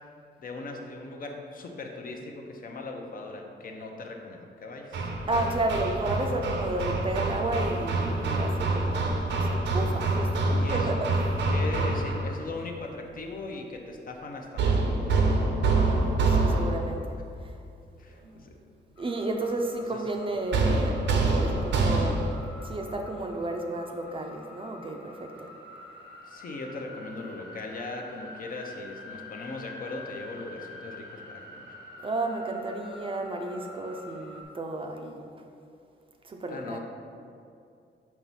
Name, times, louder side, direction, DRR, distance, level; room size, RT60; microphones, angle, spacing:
voice 1, 0.4-5.1 10.6-10.9 11.5-15.3 18.0-18.5 19.9-20.0 26.3-31.8 36.5-36.8, left 3 dB, 50° left, 2 dB, 0.6 m, -39 dB
Hammer, 4.9-12.4 14.6-17.0 20.5-22.4, right 3 dB, 80° right, 0.6 m, -26 dB
voice 2, 5.3-11.5 15.6-17.2 17.4-17.5 19.0-22.2 22.6-25.5 32.0-35.2 36.2-36.8, right 2 dB, 30° right, 3 dB, 0.4 m, -32 dB
sound 1, 19.0-34.4, left 1 dB, 70° left, 1.3 m, -47 dB
5.6 x 3.0 x 5.5 m, 2.5 s
wide cardioid pair, 145°, 18 cm